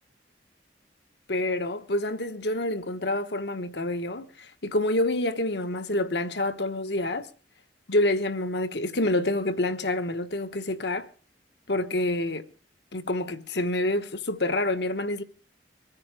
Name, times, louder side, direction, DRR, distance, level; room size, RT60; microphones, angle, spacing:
voice 1, 1.3-7.3 7.9-11.1 11.7-12.4 12.9-15.2, left 1 dB, 70° left, 1.3 m, -27 dB
23.5 x 9.7 x 4.9 m
head